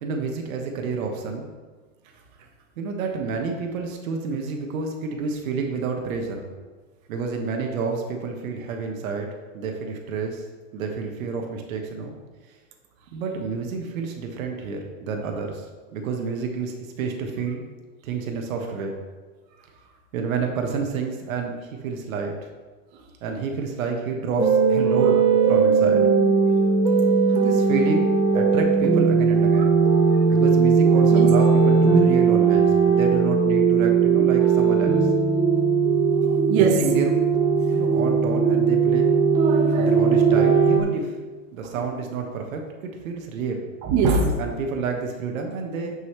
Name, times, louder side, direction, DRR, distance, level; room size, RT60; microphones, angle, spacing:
voice 1, 0.0-1.5 2.8-6.5 7.1-10.4 10.7-12.2 13.1-15.7 15.9-17.6 18.0-18.9 20.1-22.5 23.2-26.0 27.3-29.7 30.3-35.1 36.5-37.1 37.7-39.1 39.7-41.1 41.5-42.6 43.0-43.7 44.4-45.9, right 4 dB, 75° right, 2 dB, 1.3 m, -29 dB
sound 1, 24.4-40.8, right 5 dB, 10° right, 0.4 m, -18 dB
voice 2, 36.1-36.9 39.4-39.9 43.8-44.4, right 5 dB, 45° right, 1 dB, 1.3 m, -22 dB
9.7 x 5.5 x 3.2 m, 1.4 s
supercardioid pair, 135°, 41 cm